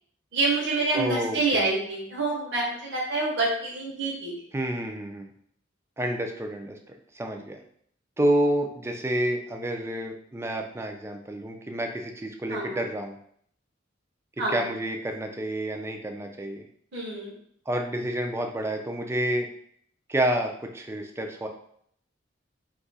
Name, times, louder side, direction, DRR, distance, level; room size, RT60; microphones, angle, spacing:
voice 1, 0.3-4.3 12.5-12.8 14.4-14.6 16.9-17.3, right 3 dB, 60° right, -4 dB, 0.8 m, -27 dB
voice 2, 0.9-1.7 4.5-5.3 6.0-6.8 7.1-7.6 8.2-13.2 14.4-16.7 17.7-19.5 20.1-21.5, right 1 dB, 15° right, 3 dB, 0.3 m, -29 dB
2.7 x 2.4 x 3.9 m, 0.64 s
head